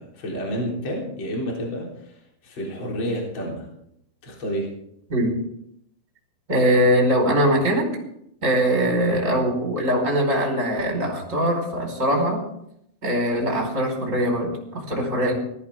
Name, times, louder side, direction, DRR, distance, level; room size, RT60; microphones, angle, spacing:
voice 1, 0.0-2.2 2.4-3.7 4.2-4.7, equal, 30° left, -2 dB, 4.2 m, -29 dB
voice 2, 6.5-7.8 8.4-12.4 13.0-15.3, equal, 20° right, 0 dB, 4.9 m, -21 dB
20.0 x 14.5 x 3.7 m, 0.74 s
omnidirectional pair, 4.5 m